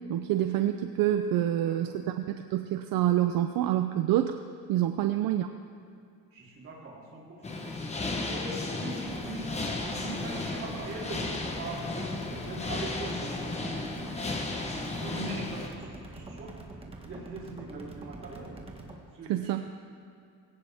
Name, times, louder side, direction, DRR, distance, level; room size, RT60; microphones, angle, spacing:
voice 1, 0.1-4.4 4.7-5.5 19.3-19.6, right 12 dB, 70° right, 7 dB, 0.7 m, -27 dB
voice 2, 1.6-1.9 6.3-14.6 15.0-16.5 17.0-18.5 19.1-19.6, right 2 dB, 40° right, -5 dB, 3.8 m, -42 dB
sound 1, 7.4-15.7, left 2 dB, 20° left, 1.1 m, -34 dB
sound 2, 9.0-18.9, right 2 dB, 15° right, 1.5 m, -45 dB
19.5 x 17.5 x 3.6 m, 2.4 s
cardioid pair, 180°, 36 cm